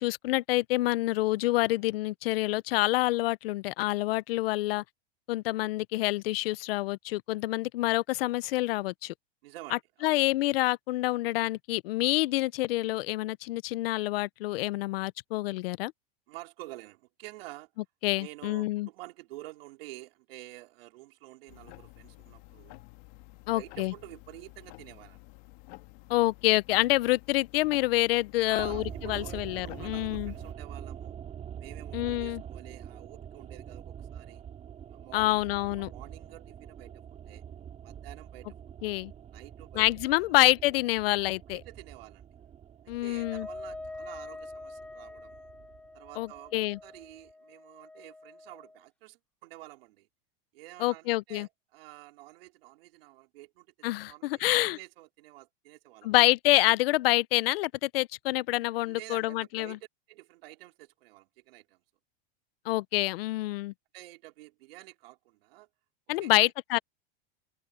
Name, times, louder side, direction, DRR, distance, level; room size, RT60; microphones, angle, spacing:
voice 1, 0.0-4.8 5.3-9.1 10.0-15.9 18.0-18.9 23.5-23.9 26.1-30.3 31.9-32.4 35.1-35.9 38.8-39.1 39.8-41.6 42.9-43.5 46.2-46.8 50.8-51.5 53.8-54.8 56.0-59.8 62.7-63.7 66.1-66.8, left 18 dB, 70° left, 0.7 m, -27 dB
voice 2, 9.4-10.1 16.3-17.7 18.2-22.8 23.5-25.2 28.4-31.2 31.6-34.4 34.9-36.9 37.3-37.4 37.8-38.6 38.8-38.9 39.3-39.9 40.3-40.4 41.5-42.3 43.0-45.5 45.9-50.1 50.5-53.7 54.0-56.2 58.9-59.8 60.1-61.8 63.9-65.7 66.2-66.5, right 18 dB, 70° right, 3.8 m, -49 dB
sound 1, 21.5-30.5, left 23 dB, 50° left, 2.0 m, -52 dB
sound 2, 28.6-46.8 47.0-47.1, right 9 dB, 20° right, 2.3 m, -45 dB
Wind instrument woodwind instrument, 43.1-48.8, left 2 dB, 5° left, 0.5 m, -45 dB
open air
supercardioid pair, 155°, 30 cm